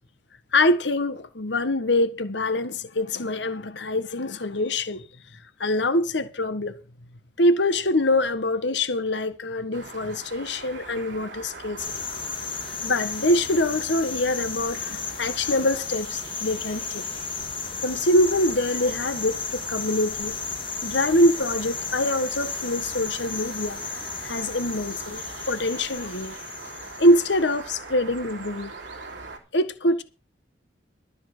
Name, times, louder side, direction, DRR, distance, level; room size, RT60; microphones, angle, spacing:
voice 1, 0.5-5.0 5.6-6.8 7.4-11.8 12.8-17.0 17.8-20.3 20.8-23.8 24.2-26.3 26.6-28.7 29.5-30.0, left 1 dB, 75° left, 1.5 m, -24 dB
sound 1, 9.7-29.4, right 3 dB, 80° right, 3.3 m, -41 dB
sound 2, 11.8-27.5, left 6 dB, 30° left, 1.9 m, -34 dB
13.0 x 7.1 x 6.7 m
head